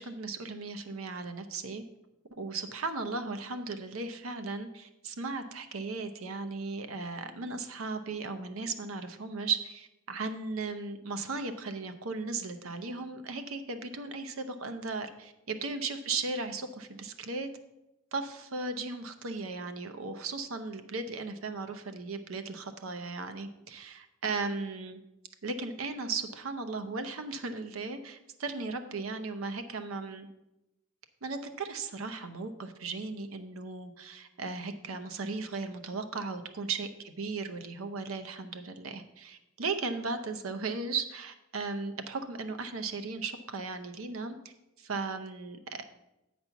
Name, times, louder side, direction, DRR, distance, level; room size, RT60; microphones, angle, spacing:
voice 1, 0.0-1.8 2.4-17.5 18.1-25.0 25.4-30.3 31.2-45.8, right 3 dB, 85° right, 8 dB, 0.8 m, -36 dB
8.0 x 4.3 x 7.0 m, 0.94 s
head